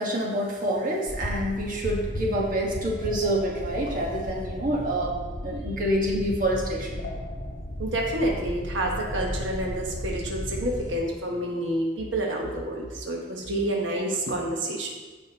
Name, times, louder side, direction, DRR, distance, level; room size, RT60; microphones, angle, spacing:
voice 1, 0.0-5.2 5.4-7.0, right 1 dB, 45° right, -2 dB, 1.4 m, -27 dB
sound 1, 1.1-11.0, left 1 dB, 70° left, 1.3 m, -35 dB
voice 2, 7.8-14.9, right 1 dB, 85° right, -1 dB, 1.2 m, -28 dB
15.0 x 5.2 x 3.0 m, 1.3 s
head